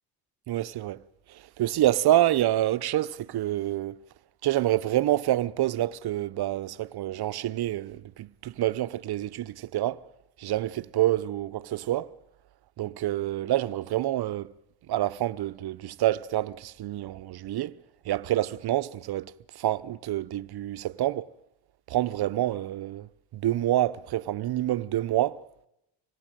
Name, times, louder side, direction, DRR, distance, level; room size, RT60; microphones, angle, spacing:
voice 1, 0.5-1.0 1.3-4.0 4.4-10.0 10.4-12.1 12.8-14.5 14.9-17.8 18.0-21.3 21.9-25.4, right 14 dB, 55° right, 0.9 m, -27 dB
26.0 x 19.5 x 9.2 m
cardioid pair, 100°, 44 cm